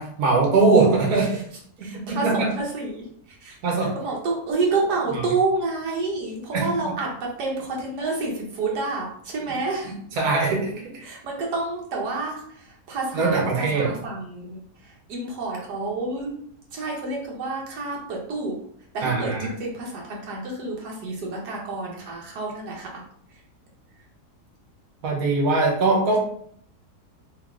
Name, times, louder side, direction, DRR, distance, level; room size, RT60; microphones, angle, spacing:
voice 1, 0.0-1.3 1.8-2.5 3.6-3.9 6.5-6.6 10.2-11.0 13.1-13.9 19.0-19.5 25.0-26.2, right 3 dB, 70° right, -1 dB, 1.4 m, -21 dB
voice 2, 1.8-10.0 11.0-16.3 16.7-18.6 18.9-22.9, right 3 dB, 85° right, -2 dB, 1.6 m, -29 dB
3.6 x 2.9 x 3.5 m, 0.63 s
omnidirectional pair, 1.7 m